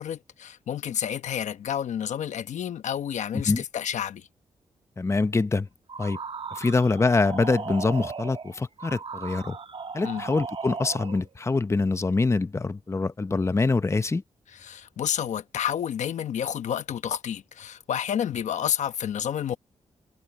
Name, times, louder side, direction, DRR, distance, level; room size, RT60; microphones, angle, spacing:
voice 1, 0.0-4.3 10.0-10.2 14.5-19.6, left 9 dB, 80° left, 1.1 m, -30 dB
voice 2, 5.0-5.7 6.0-6.2 6.5-9.6 9.9-14.2, left 3 dB, 25° left, 0.7 m, -24 dB
sound 1, 5.9-11.3, right 5 dB, 50° right, 1.4 m, -37 dB
cardioid pair, 85°, 12 cm